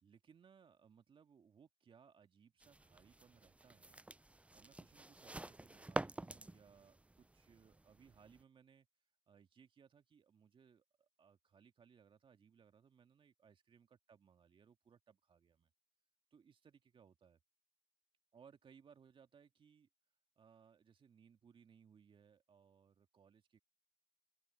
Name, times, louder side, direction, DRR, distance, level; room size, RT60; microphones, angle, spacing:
voice 1, 0.0-4.0 4.5-8.9 9.3-15.7 16.3-17.4 18.3-19.9 20.4-23.6, right 7 dB, 55° right, 2.1 m, -66 dB
sound 1, 2.6-8.4, right 2 dB, 10° right, 0.5 m, -48 dB
hypercardioid pair, 45°, 10 cm